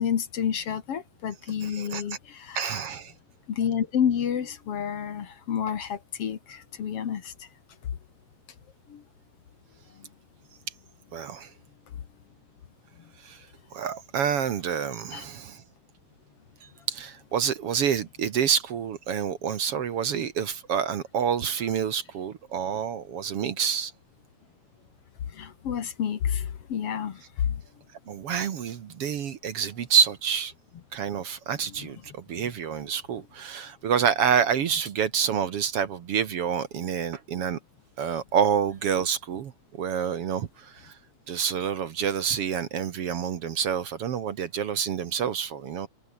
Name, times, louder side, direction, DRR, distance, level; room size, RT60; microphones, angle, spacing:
voice 1, 0.0-2.7 3.5-7.3 8.9-9.0 15.1-15.2 25.4-27.6 31.8-31.9, left 8 dB, 55° left, 2.5 m, -29 dB
voice 2, 1.6-2.0 2.6-3.1 11.1-11.5 13.2-13.5 13.7-15.6 16.6-23.9 28.1-30.5 30.9-37.6 38.0-41.0 41.3-45.9, right 7 dB, 60° right, 2.1 m, -28 dB
omnidirectional pair, 3.3 m